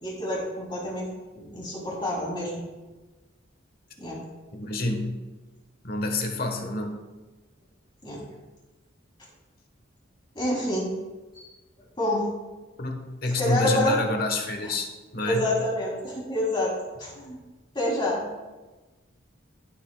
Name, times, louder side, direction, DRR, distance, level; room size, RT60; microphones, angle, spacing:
voice 1, 0.0-1.1 1.3-2.6 4.0-4.2 8.0-8.2 10.3-10.9 11.3-11.5 11.8-12.2 13.4-14.0 14.6-14.7 15.2-16.7 17.0-17.4 17.7-18.2, left 1 dB, 25° left, -5 dB, 3.1 m, -28 dB
voice 2, 4.5-5.1 5.8-6.9 12.8-14.9 15.1-15.5, left 2 dB, 50° left, 4 dB, 1.2 m, -28 dB
14.0 x 7.7 x 2.3 m, 1.2 s
head